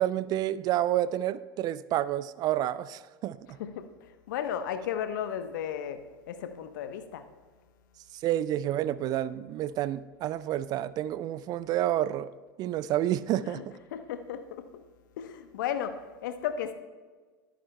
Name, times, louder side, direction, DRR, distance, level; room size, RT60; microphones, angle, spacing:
voice 1, 0.0-3.6 8.1-12.3 12.6-13.8, right 12 dB, 35° right, 17 dB, 0.3 m, -29 dB
voice 2, 3.6-6.0 6.3-7.2 13.4-14.6 15.2-16.7, left 9 dB, 60° left, 10 dB, 0.9 m, -35 dB
22.5 x 9.1 x 2.2 m, 1.4 s
figure-of-eight pair, 85°, 12 cm